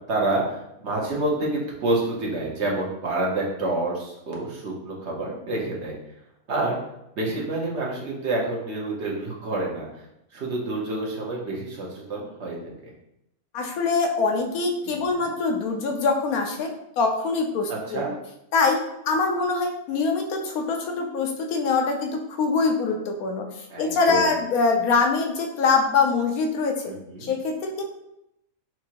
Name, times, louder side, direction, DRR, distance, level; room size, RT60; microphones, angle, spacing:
voice 1, 0.1-6.0 6.5-6.8 7.2-10.0 10.3-12.9 14.9-15.0 17.7-18.1 23.7-24.3 26.8-27.3, right 2 dB, 55° right, -3 dB, 1.1 m, -28 dB
voice 2, 13.5-18.0 18.5-18.8 19.0-23.5 23.8-26.7 27.2-27.8, left 4 dB, 80° left, 2 dB, 1.1 m, -24 dB
5.8 x 2.7 x 2.9 m, 0.83 s
omnidirectional pair, 1.5 m